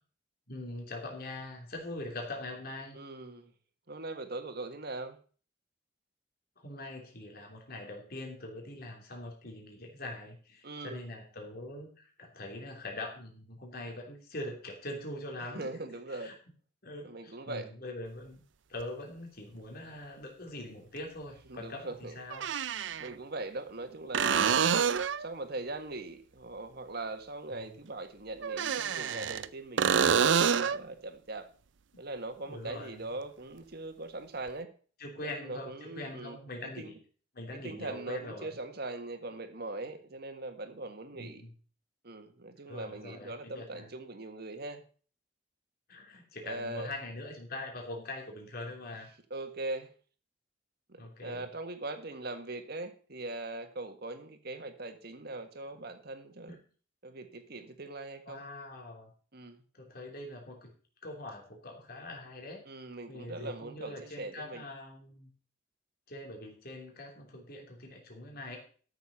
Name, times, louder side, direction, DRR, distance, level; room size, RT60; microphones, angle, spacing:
voice 1, 0.5-3.0 6.6-15.7 16.1-16.3 16.8-18.4 18.7-22.5 27.5-27.7 32.4-33.0 35.0-37.0 37.3-38.5 41.1-41.5 42.7-43.9 45.9-49.1 51.0-51.5 56.5-56.6 58.2-59.1 59.7-60.7 61.0-62.6 63.1-65.3 66.1-68.6, left 2 dB, 50° left, 1 dB, 3.3 m, -43 dB
voice 2, 2.9-3.5 3.9-5.2 10.6-11.0 15.5-16.3 17.0-17.7 21.5-22.2 23.0-24.7 25.2-31.5 32.0-34.7 35.2-36.4 36.8-36.9 37.5-41.4 42.0-44.8 46.4-46.9 49.3-49.9 50.9-56.6 57.0-58.4 59.3-59.6 62.6-64.6, right 2 dB, 55° right, 7 dB, 1.7 m, -41 dB
sound 1, 18.8-18.9 21.0-21.1 22.3-23.1 24.1-25.3 28.4-29.5 29.8-30.8 34.5-34.6, right 7 dB, 70° right, 0.5 m, -27 dB
13.0 x 7.1 x 5.6 m, 0.41 s
head